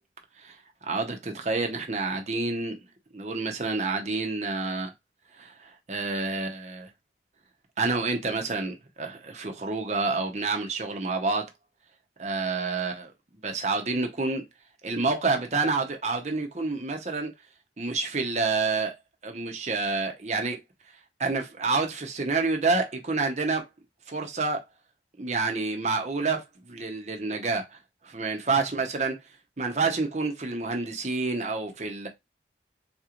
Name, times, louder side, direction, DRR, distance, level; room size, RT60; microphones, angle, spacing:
voice 1, 0.8-2.8 3.1-4.9 5.4-6.9 7.8-11.5 12.2-13.1 13.4-14.4 14.8-17.3 17.8-18.9 19.2-20.6 21.2-23.7 24.1-24.6 25.2-27.8 28.0-29.2 29.6-32.1, right 3 dB, 40° right, 0.8 m, -28 dB
3.9 x 3.0 x 2.4 m
head